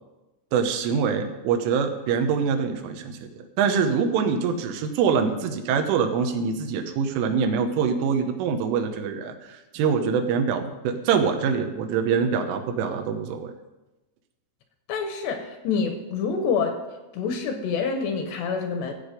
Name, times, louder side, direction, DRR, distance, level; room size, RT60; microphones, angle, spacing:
voice 1, 0.5-3.3 3.6-13.5, right 6 dB, 85° right, 5 dB, 3.6 m, -24 dB
voice 2, 14.9-16.8 17.1-18.9, left 5 dB, 75° left, 5 dB, 2.8 m, -27 dB
16.0 x 8.3 x 5.1 m, 1.1 s
omnidirectional pair, 5.6 m